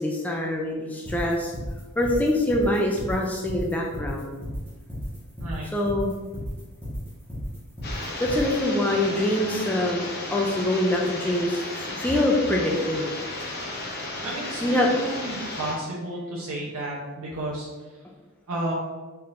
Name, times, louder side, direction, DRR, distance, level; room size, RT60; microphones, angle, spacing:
voice 1, 0.0-1.5 2.0-4.4 5.7-6.1 8.2-13.1 14.6-14.9, left 1 dB, 5° left, -1 dB, 0.3 m, -24 dB
sound 1, 1.0-8.5, equal, 10° right, 1.3 m, -33 dB
voice 2, 5.4-5.7 14.2-17.7 18.5-18.7, right 1 dB, 70° right, -5 dB, 0.7 m, -32 dB
sound 2, 7.8-15.8, left 2 dB, 45° left, 0.8 m, -34 dB
4.4 x 3.6 x 2.5 m, 1.3 s
head